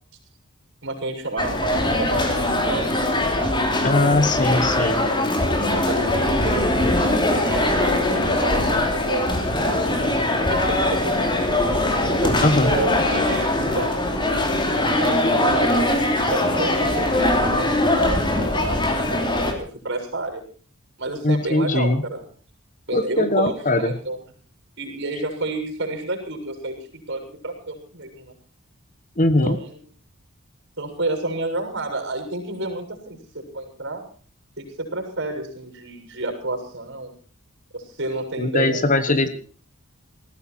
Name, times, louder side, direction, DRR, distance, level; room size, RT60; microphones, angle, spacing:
voice 1, 0.8-2.9 4.2-4.9 5.7-11.6 12.2-13.9 15.0-15.8 16.3-17.7 18.0-20.4 21.0-22.3 22.9-24.2 24.8-28.3 29.4-29.8 30.8-34.0 34.6-37.1 37.7-39.3, right 2 dB, 55° right, 4 dB, 7.1 m, -30 dB
sound 1, 1.4-19.5, left 1 dB, 20° left, 3.1 m, -21 dB
voice 2, 3.8-5.0 12.4-12.7 21.2-22.0 22.9-23.9 29.2-29.6 38.4-39.3, left 2 dB, 35° left, 12 dB, 1.4 m, -20 dB
19.5 x 15.5 x 4.5 m, 0.41 s
head